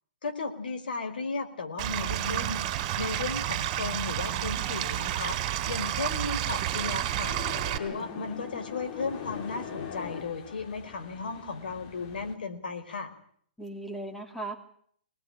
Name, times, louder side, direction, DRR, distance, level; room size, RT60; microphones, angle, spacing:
voice 1, 0.2-2.6 3.0-7.4 7.8-13.1, left 4 dB, 70° left, 7 dB, 4.5 m, -35 dB
Stream / Liquid, 1.8-7.8, right 13 dB, 35° right, 3.7 m, -30 dB
sound 1, 7.3-12.3, left 8 dB, 40° left, 3.2 m, -41 dB
voice 2, 7.9-8.6 13.6-14.6, right 2 dB, 5° left, 5 dB, 3.1 m, -39 dB
24.0 x 19.5 x 8.9 m, 0.63 s
hypercardioid pair, 135°, 5 cm